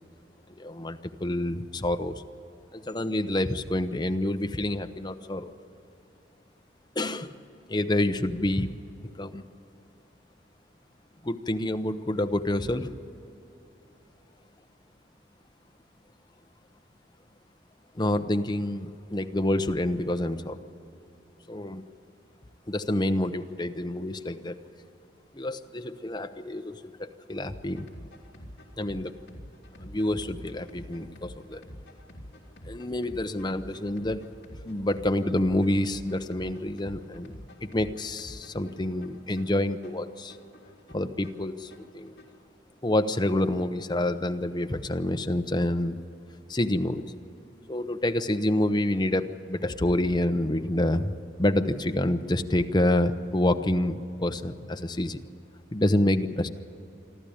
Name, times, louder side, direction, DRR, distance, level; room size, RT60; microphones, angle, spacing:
voice 1, 0.6-2.2 2.7-5.5 7.0-7.4 7.7-8.7 9.2-9.4 11.2-12.9 17.9-20.6 21.5-21.8 22.7-24.6 25.3-27.9 28.8-29.1 29.8-31.6 32.7-34.3 34.6-40.4 40.9-42.1 42.8-46.0 46.5-47.1 47.7-55.2 55.7-56.5, left 1 dB, 25° left, 8 dB, 0.8 m, -28 dB
sound 1, 27.4-42.4, equal, 65° left, 3.1 m, -47 dB
27.0 x 12.5 x 8.7 m, 2.9 s
head